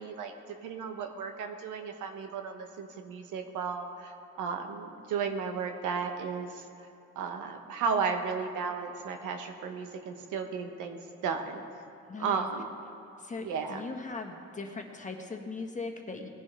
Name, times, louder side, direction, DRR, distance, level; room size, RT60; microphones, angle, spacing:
voice 1, 0.0-6.6 7.1-11.6 12.2-12.7 13.4-13.8, right 5 dB, 90° right, 5 dB, 1.1 m, -34 dB
voice 2, 12.1-12.5 13.2-16.3, left 3 dB, 25° left, 2 dB, 1.4 m, -39 dB
19.0 x 10.5 x 3.4 m, 2.8 s
cardioid pair, 90°, 30 cm